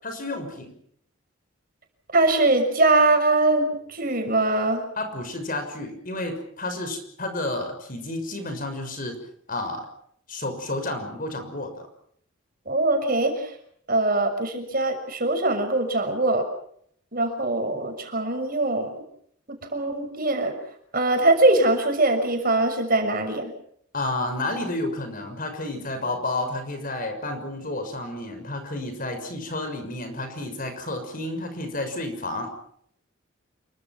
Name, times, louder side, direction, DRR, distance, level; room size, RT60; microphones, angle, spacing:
voice 1, 0.0-0.7 5.0-9.2 9.5-9.9 10.3-11.7 23.9-32.5, left 2 dB, 40° left, 7 dB, 6.3 m, -31 dB
voice 2, 2.1-4.8 12.7-13.3 13.9-16.4 17.1-18.9 19.5-20.5 20.9-23.5, right 2 dB, 45° right, 5 dB, 6.4 m, -22 dB
29.0 x 24.5 x 6.1 m, 0.66 s
head